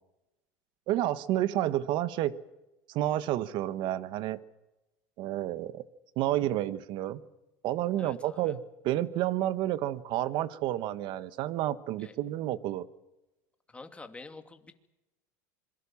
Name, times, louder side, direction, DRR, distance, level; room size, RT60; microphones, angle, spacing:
voice 1, 0.9-2.3 2.9-4.4 5.2-5.8 6.2-7.2 7.6-12.9, right 13 dB, 55° right, 13 dB, 1.5 m, -30 dB
voice 2, 8.0-8.6 12.0-12.1 13.7-14.8, left 3 dB, 15° left, 6 dB, 2.6 m, -47 dB
26.0 x 22.5 x 7.3 m, 0.96 s
supercardioid pair, 115°, 9 cm